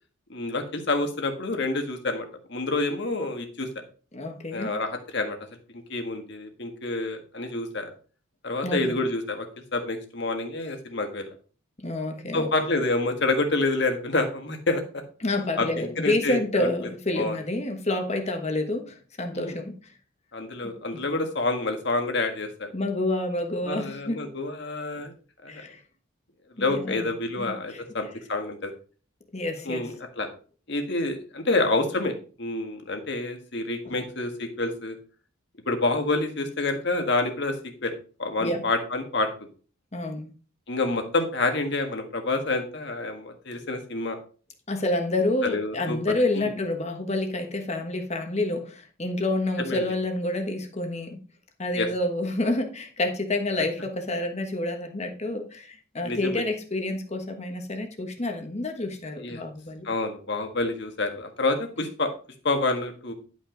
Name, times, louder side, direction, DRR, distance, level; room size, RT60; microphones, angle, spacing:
voice 1, 0.3-3.7 4.5-5.4 5.7-7.9 8.4-9.5 9.7-11.2 12.3-15.0 15.6-16.7 17.2-17.4 19.3-19.6 20.3-22.7 23.6-25.1 25.4-25.6 26.6-28.7 29.6-30.3 30.7-35.0 35.6-37.5 37.8-37.9 38.2-39.3 40.7-44.2 45.4-46.5 49.6-49.8 51.8-51.9 56.0-56.4 59.2-59.4 59.8-62.1 62.4-63.1, left 2 dB, 55° left, 5 dB, 1.6 m, -28 dB
voice 2, 4.1-4.7 8.6-9.0 11.8-12.5 15.2-19.8 20.6-20.7 22.7-24.2 25.5-25.8 26.6-27.1 27.4-27.8 29.3-29.9 33.8-34.0 38.4-38.6 39.9-40.3 44.7-51.2 51.6-59.9, left 2 dB, 30° left, 5 dB, 1.3 m, -28 dB
11.0 x 5.5 x 3.9 m, 0.39 s
head